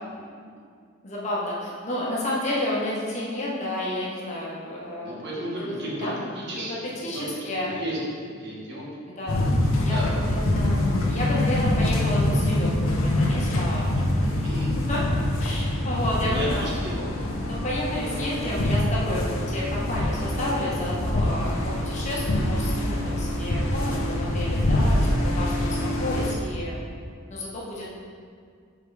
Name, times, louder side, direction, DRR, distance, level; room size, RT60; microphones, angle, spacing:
voice 1, 1.0-6.2 6.5-7.8 9.1-14.4 14.9-16.7 17.4-26.8 27.3-28.0, left 1 dB, 35° left, -5 dB, 1.1 m, -31 dB
voice 2, 5.0-6.1 6.4-6.7 7.0-8.0 8.3-8.8 9.9-10.1 14.4-14.7 16.3-17.2 21.2-21.5, right 1 dB, 55° right, -5 dB, 1.3 m, -34 dB
sound 1, 9.3-26.3, left 1 dB, 85° left, 0.8 m, -25 dB
6.7 x 4.7 x 3.4 m, 2.1 s
head